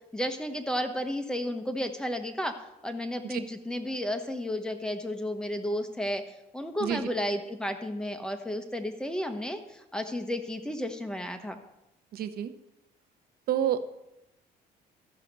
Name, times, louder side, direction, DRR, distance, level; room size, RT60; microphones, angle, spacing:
voice 1, 0.1-2.6 2.8-6.2 6.5-11.6, equal, 5° left, 6 dB, 1.0 m, -32 dB
voice 2, 12.1-12.5 13.5-13.8, right 10 dB, 65° right, 9 dB, 0.8 m, -28 dB
14.0 x 5.7 x 5.3 m, 0.90 s
cardioid pair, 110°, 17 cm